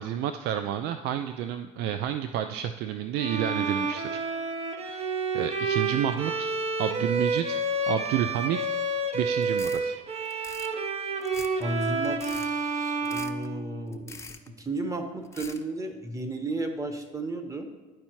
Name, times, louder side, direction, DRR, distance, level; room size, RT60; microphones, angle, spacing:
voice 1, 0.0-4.2 4.8-6.5 6.8-7.6 7.9-8.6 9.1-10.0, right 10 dB, 60° right, 9 dB, 0.4 m, -30 dB
Bowed string instrument, 3.2-14.2, right 3 dB, 35° right, 0.7 m, -30 dB
sound 1, 9.4-9.8 10.2-10.7 11.2-11.6 12.0-12.5 13.0-13.5 13.9-14.5 15.2-15.6, left 4 dB, 15° left, 0.6 m, -43 dB
voice 2, 11.6-14.3 14.6-17.7, right 2 dB, 15° right, 6 dB, 1.1 m, -33 dB
11.5 x 4.4 x 3.0 m, 1.4 s
hypercardioid pair, 75°, 19 cm